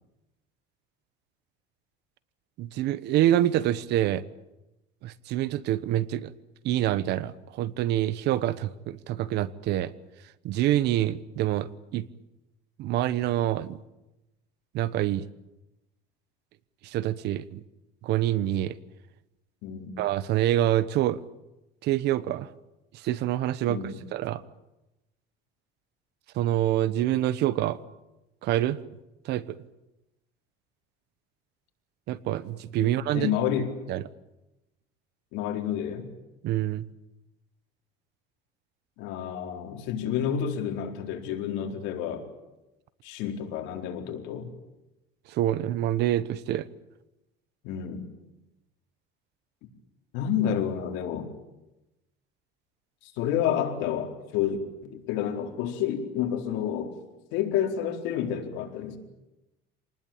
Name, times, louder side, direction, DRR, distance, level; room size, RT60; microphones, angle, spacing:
voice 1, 2.6-4.2 5.0-6.3 6.6-9.9 10.4-12.1 12.8-13.8 14.7-15.3 16.8-17.6 18.0-18.8 20.0-21.2 21.8-22.5 23.0-23.8 24.1-24.4 26.4-27.8 28.4-28.8 29.2-29.4 32.1-33.3 33.9-34.0 36.4-36.8 45.3-46.7, right 13 dB, 60° right, 17 dB, 1.1 m, -26 dB
voice 2, 19.6-20.0 23.7-24.0 32.8-33.7 35.3-36.1 39.0-42.2 43.0-44.5 47.6-48.1 50.1-51.3 53.0-56.9 57.3-59.0, left 9 dB, 75° left, 3 dB, 4.2 m, -29 dB
27.0 x 19.5 x 8.8 m, 0.97 s
cardioid pair, 145°, 20 cm